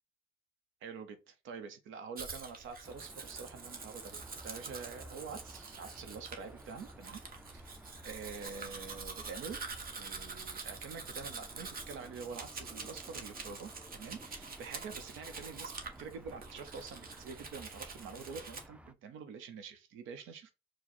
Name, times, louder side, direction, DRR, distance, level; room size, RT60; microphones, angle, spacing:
voice 1, 0.8-7.7 8.0-9.6 9.9-20.5, right 5 dB, 90° right, 0.7 m, -46 dB
Domestic sounds home sounds, 2.2-18.7, right 4 dB, 45° right, 1.0 m, -46 dB
sound 1, 2.8-18.9, equal, 5° right, 0.4 m, -55 dB
4.7 x 2.1 x 4.3 m
cardioid pair, 90°, 20 cm